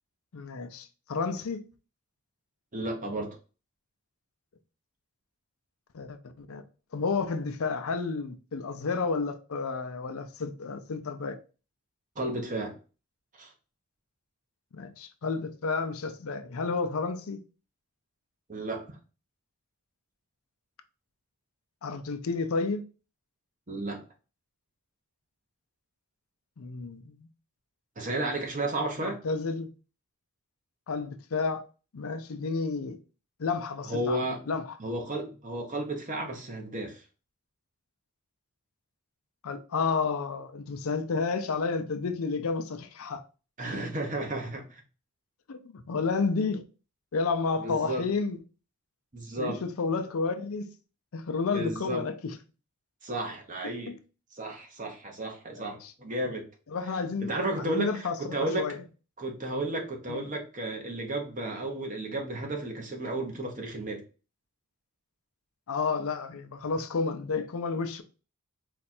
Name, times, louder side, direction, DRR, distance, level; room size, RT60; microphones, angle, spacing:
voice 1, 0.3-1.6 3.0-3.1 5.9-6.6 6.9-11.4 14.7-17.4 21.8-22.8 26.6-27.3 29.0-29.7 30.9-31.6 31.9-33.0 33.4-34.8 39.4-43.2 45.5-46.6 47.1-48.4 49.4-50.7 51.1-52.3 53.6-53.9 55.6-55.9 56.7-57.3 57.6-58.8 60.1-60.3 65.7-68.0, left 4 dB, 70° left, 0.5 m, -31 dB
voice 2, 2.7-3.4 12.2-12.8 13.3-13.5 18.5-19.0 23.7-24.0 28.0-29.2 33.8-34.4 34.8-37.0 43.6-44.8 47.6-48.0 49.1-49.6 51.5-52.0 53.0-53.9 54.4-56.5 57.2-58.7 59.2-64.0, right 1 dB, 35° right, 1.0 m, -33 dB
4.3 x 2.4 x 4.2 m
head